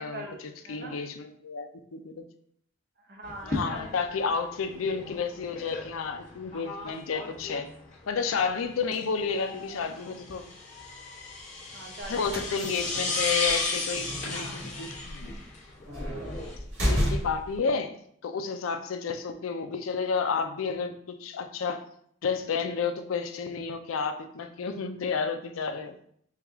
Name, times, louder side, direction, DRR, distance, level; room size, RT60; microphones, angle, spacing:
voice 1, 0.0-1.0 3.0-3.9 4.2-4.3 11.7-12.4 14.3-14.9, right 1 dB, 50° right, 2 dB, 0.7 m, -42 dB
voice 2, 0.7-2.1 3.5-7.7 8.1-10.4 12.1-15.3 16.9-17.9 18.2-21.8 22.2-26.0, left 5 dB, 90° left, 8 dB, 0.4 m, -31 dB
sound 1, 3.2-16.6, left 3 dB, 40° left, 1.1 m, -35 dB
sound 2, 12.0-17.6, equal, 75° right, 1.6 m, -32 dB
4.6 x 2.3 x 3.5 m, 0.67 s
head